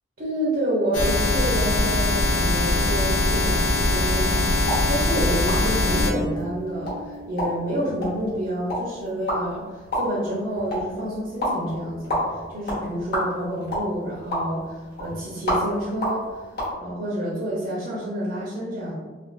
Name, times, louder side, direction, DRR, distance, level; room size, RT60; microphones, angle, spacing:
voice 1, 0.2-16.5 16.8-18.9, right 1 dB, 55° right, -6 dB, 0.5 m, -29 dB
sound 1, 0.9-6.1, left 2 dB, 80° left, 0.5 m, -22 dB
sound 2, 4.6-16.7, equal, 60° left, 0.9 m, -31 dB
Bass guitar, 5.9-8.5, equal, 5° right, 0.4 m, -36 dB
2.4 x 2.3 x 2.3 m, 1.4 s
head